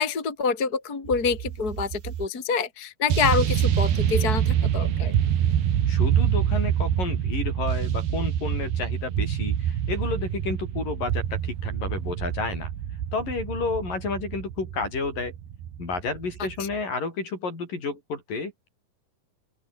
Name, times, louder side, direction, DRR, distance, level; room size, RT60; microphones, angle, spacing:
voice 1, 0.0-5.1, left 5 dB, 25° left, 3.2 m, -26 dB
sound 1, 1.1-2.3 3.1-16.8, right 10 dB, 85° right, 4.2 m, -26 dB
voice 2, 5.9-12.7 13.1-15.3 15.8-18.7, left 4 dB, 65° left, 8.6 m, -31 dB
open air
omnidirectional pair, 4.3 m